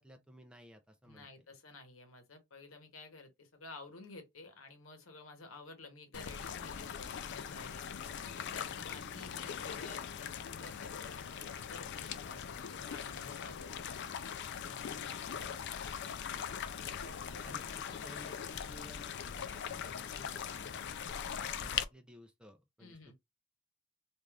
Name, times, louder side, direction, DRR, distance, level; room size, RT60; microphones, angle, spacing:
voice 1, 0.0-1.5 15.3-15.7 17.4-21.0 21.4-23.1, left 1 dB, 5° right, 0.4 m, -56 dB
voice 2, 1.0-7.9 8.3-13.9 14.5-15.2 15.9-16.1 17.0-17.6 22.8-23.1, left 3 dB, 75° left, 1.0 m, -52 dB
sound 1, 6.1-21.8, left 8 dB, 55° left, 0.4 m, -41 dB
2.5 x 2.4 x 3.2 m
head